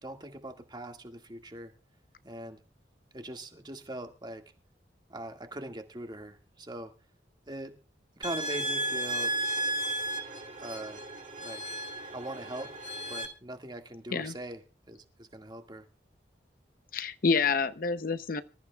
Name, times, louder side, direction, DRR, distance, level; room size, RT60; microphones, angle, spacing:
voice 1, 0.0-1.7 2.2-2.6 3.1-4.4 5.1-6.9 7.5-7.7 8.2-9.4 10.6-11.0 11.4-11.6 12.1-12.7 13.1-14.6 14.9-15.8, right 1 dB, 25° right, 1.9 m, -41 dB
sound 1, 8.2-13.3, right 1 dB, 45° right, 2.7 m, -34 dB
voice 2, 16.9-18.4, left 5 dB, 50° left, 0.7 m, -28 dB
25.5 x 14.0 x 2.3 m
head